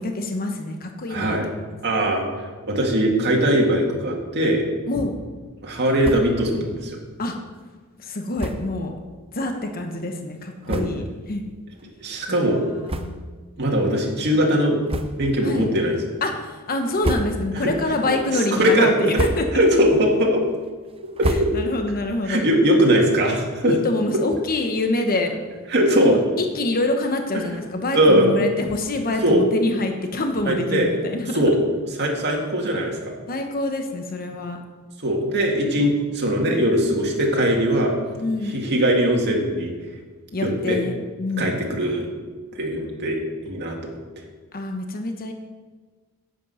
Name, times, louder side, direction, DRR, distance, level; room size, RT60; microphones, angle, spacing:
voice 1, 0.0-1.6 4.9-5.1 7.2-7.4 8.0-9.0 9.3-11.4 12.3-13.1 15.4-15.7 16.2-19.6 21.3-22.5 23.6-25.3 25.9-31.4 33.3-34.6 38.2-38.6 40.3-40.9 41.2-41.5 44.5-45.3, left 2 dB, 40° left, 4 dB, 1.0 m, -26 dB
voice 2, 1.1-1.5 1.8-4.6 5.6-7.0 10.7-10.8 12.0-12.6 13.6-14.8 15.2-16.0 17.5-17.7 18.1-18.2 18.6-18.9 19.5-20.4 21.2-21.5 22.2-23.7 25.7-26.2 27.9-28.4 29.2-29.5 30.4-30.9 31.3-31.5 32.0-33.1 35.0-37.9 38.4-39.7 40.4-40.8 41.4-42.1 42.6-44.3, equal, 50° right, 0 dB, 2.1 m, -20 dB
sound 1, 6.0-6.5 6.8-6.9 7.2-7.3 8.3-8.8 9.5-9.6 10.3-10.4 10.6-11.2 11.7-11.9 12.8-13.5 13.8-14.0 14.8-15.4 15.9-16.3 16.8-17.7 18.1-18.5 18.9-19.8 20.1-22.0, right 1 dB, 25° right, 0.6 m, -30 dB
10.5 x 8.4 x 5.5 m, 1.4 s
head